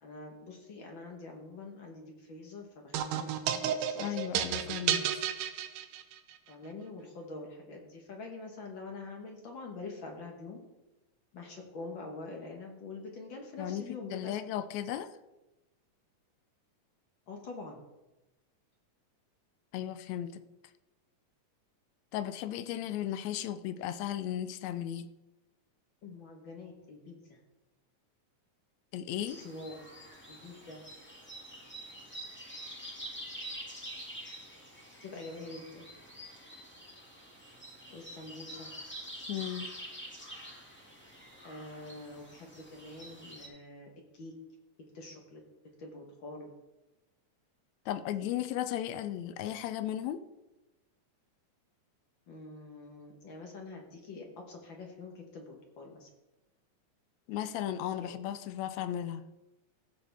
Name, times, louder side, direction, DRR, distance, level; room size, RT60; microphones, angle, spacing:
voice 1, 0.0-4.7 6.5-10.6 11.3-14.4 17.3-17.9 26.0-27.4 29.3-29.8 30.3-30.8 35.0-35.9 37.9-38.7 41.4-44.3 44.9-45.4 45.8-46.5 52.3-56.1 58.0-58.1, left 3 dB, 55° left, 2 dB, 1.4 m, -45 dB
sound 1, 2.9-6.3, right 9 dB, 90° right, 2.3 m, -32 dB
voice 2, 4.0-5.3 13.6-13.8 14.1-15.1 19.7-20.4 22.1-25.1 28.9-29.4 39.3-39.7 47.9-50.2 57.3-59.2, left 11 dB, 80° left, 11 dB, 1.7 m, -35 dB
sound 2, 29.2-43.5, equal, 5° left, 1.2 m, -47 dB
15.5 x 6.8 x 3.4 m, 1.0 s
omnidirectional pair, 3.5 m